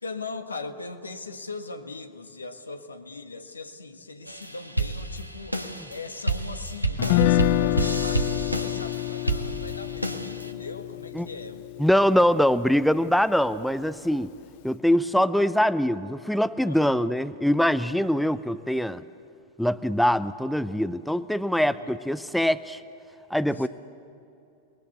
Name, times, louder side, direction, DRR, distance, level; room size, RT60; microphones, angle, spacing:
voice 1, 0.0-11.8 16.6-17.0 18.3-18.4 21.6-22.0 23.5-23.7, left 3 dB, 80° left, 8 dB, 1.5 m, -40 dB
sound 1, 4.3-10.5, right 2 dB, 85° right, 1.3 m, -30 dB
Guitar, 7.0-13.1, left 19 dB, 50° left, 0.6 m, -27 dB
voice 2, 11.8-14.3 14.6-19.0 19.6-22.8 23.3-23.7, equal, ahead, 13 dB, 0.6 m, -23 dB
29.5 x 20.5 x 8.3 m, 2.6 s
figure-of-eight pair, 90°, 0 cm